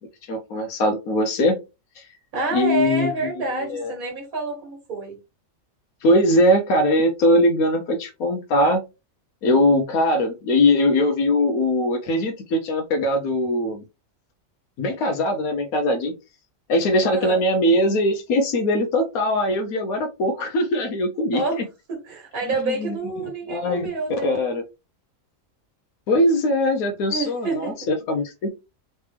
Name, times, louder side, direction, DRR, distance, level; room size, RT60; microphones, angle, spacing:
voice 1, 0.2-1.6 2.0-2.1 2.5-3.3 3.6-3.9 6.0-8.8 9.4-13.8 14.8-16.1 16.7-21.6 22.6-23.9 24.2-24.6 26.1-28.5, left 1 dB, 90° left, 1.3 m, -21 dB
voice 2, 2.3-5.2 17.0-17.4 21.3-21.6 21.9-24.3 27.1-27.7, right 2 dB, 85° right, 2.1 m, -28 dB
4.1 x 3.3 x 3.3 m
omnidirectional pair, 1.5 m